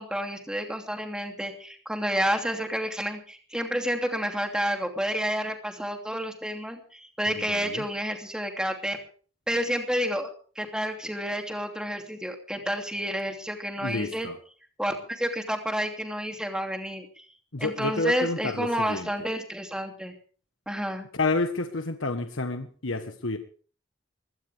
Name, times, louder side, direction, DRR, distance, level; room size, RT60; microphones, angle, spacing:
voice 1, 0.0-9.0 9.5-10.3 10.6-14.3 14.8-17.3 17.6-20.1 20.7-21.1, equal, 5° right, 4 dB, 2.9 m, -30 dB
voice 2, 7.3-7.9 13.8-14.4 17.5-19.1 21.1-23.4, left 3 dB, 90° left, 7 dB, 1.4 m, -30 dB
22.0 x 17.0 x 3.5 m, 0.43 s
head